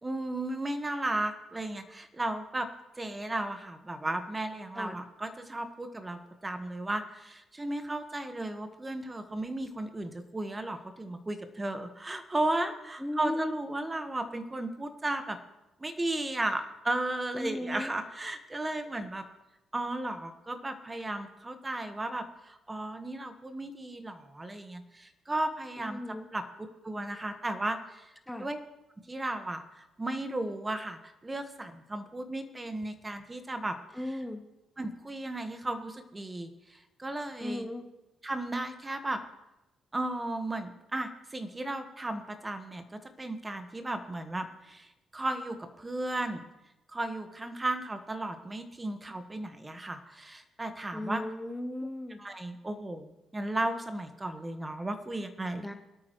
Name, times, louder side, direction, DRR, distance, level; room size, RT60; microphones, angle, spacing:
voice 1, 0.0-2.7 3.0-15.4 15.8-19.2 19.7-26.0 26.3-26.4 26.8-28.1 28.4-28.6 29.1-34.2 34.8-37.7 38.2-39.2 39.9-42.8 43.2-46.4 46.9-51.2 52.2-55.6, right 2 dB, 20° right, 8 dB, 1.3 m, -35 dB
voice 2, 13.0-13.5 17.3-17.9 25.8-26.3 28.3-28.5 33.9-34.4 37.4-37.9 50.9-52.2 55.6-55.7, left 1 dB, 5° left, 5 dB, 1.1 m, -36 dB
23.0 x 8.7 x 3.1 m, 0.97 s
supercardioid pair, 60°, 0 cm